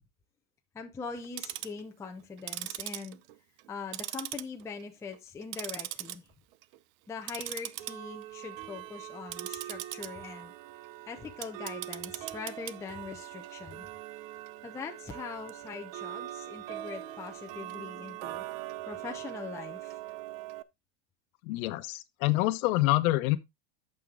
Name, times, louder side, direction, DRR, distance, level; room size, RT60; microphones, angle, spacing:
voice 1, 0.7-3.2 3.7-6.3 7.1-10.5 11.1-13.9 14.6-18.4 18.9-20.0, left 5 dB, 5° left, 0.5 m, -42 dB
Tick-tock, 1.2-1.8 2.4-3.7 3.9-4.8 5.1-6.2 6.5-6.8 7.2-20.6, right 15 dB, 65° right, 0.7 m, -41 dB
voice 2, 21.4-23.4, left 18 dB, 70° left, 1.0 m, -26 dB
8.5 x 6.9 x 3.7 m
supercardioid pair, 155°, 44 cm